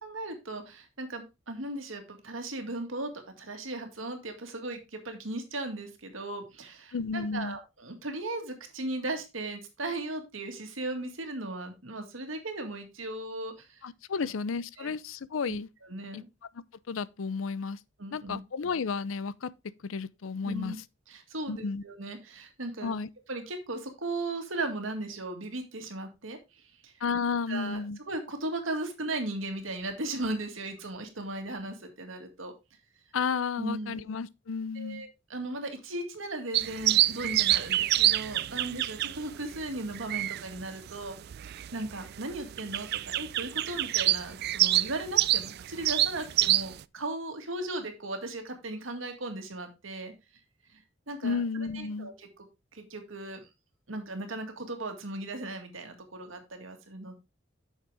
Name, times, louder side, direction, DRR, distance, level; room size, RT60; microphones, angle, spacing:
voice 1, 0.0-3.1 3.4-13.8 14.2-14.3 14.8-14.9 15.5-15.6 15.8-16.3 18.0-18.4 20.4-20.8 21.1-22.9 23.3-26.9 27.5-27.8 28.1-32.5 33.6-34.1 34.8-41.2 41.4-50.1 50.7-50.8 51.1-51.4 51.7-52.3 52.7-53.4 53.9-57.1, right 2 dB, 85° right, 2.0 m, -37 dB
voice 2, 6.9-7.6 13.8-15.7 16.1-16.2 16.9-17.8 18.1-19.5 19.8-20.7 21.5-21.8 22.8-23.1 27.0-28.0 33.1-35.0 51.2-52.1, left 5 dB, 90° left, 0.5 m, -32 dB
sound 1, 36.5-46.8, right 15 dB, 55° right, 0.3 m, -27 dB
8.6 x 6.5 x 3.4 m
head